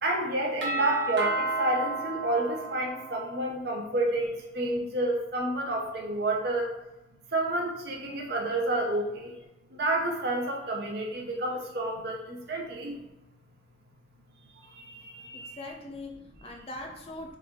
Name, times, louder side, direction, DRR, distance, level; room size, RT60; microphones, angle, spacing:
voice 1, 0.0-6.7 7.3-9.3 9.7-13.0 14.8-15.5, right 1 dB, 60° right, 0 dB, 0.7 m, -30 dB
Doorbell, 0.6-3.4, right 3 dB, 80° right, 1.1 m, -32 dB
voice 2, 15.3-17.4, left 2 dB, 30° left, 2 dB, 0.5 m, -41 dB
3.2 x 2.4 x 3.5 m, 0.97 s
head